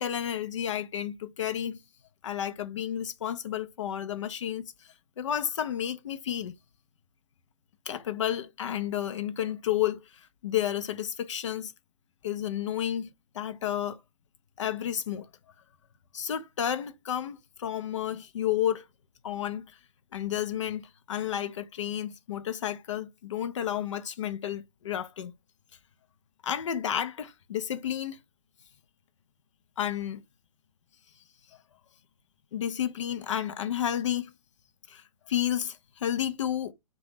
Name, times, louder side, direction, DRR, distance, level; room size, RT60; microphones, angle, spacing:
voice 1, 0.0-1.8 2.2-4.7 5.2-6.5 7.9-11.7 12.2-14.0 14.6-15.3 16.1-18.8 19.2-19.7 20.1-25.3 26.4-28.2 29.8-30.2 32.5-34.3 34.9-35.0 35.3-36.7, left 10 dB, 50° left, 0.5 m, -31 dB
2.6 x 2.2 x 3.4 m
figure-of-eight pair, 125°, 20 cm